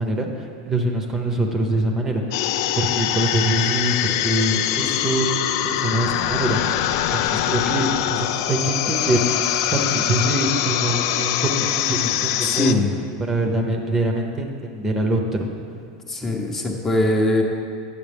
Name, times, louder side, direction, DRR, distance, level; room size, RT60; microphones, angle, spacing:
voice 1, 0.0-2.4 2.8-5.3 5.6-6.6 7.1-9.3 9.7-12.8 13.2-15.5 16.2-16.3, right 1 dB, 20° right, 2 dB, 0.7 m, -24 dB
sound 1, 2.3-12.7, left 12 dB, 65° left, 0.3 m, -23 dB
voice 2, 12.4-12.9 16.1-17.4, left 1 dB, 15° left, 1 dB, 0.8 m, -21 dB
9.6 x 7.0 x 3.5 m, 2.3 s
supercardioid pair, 140°, 2 cm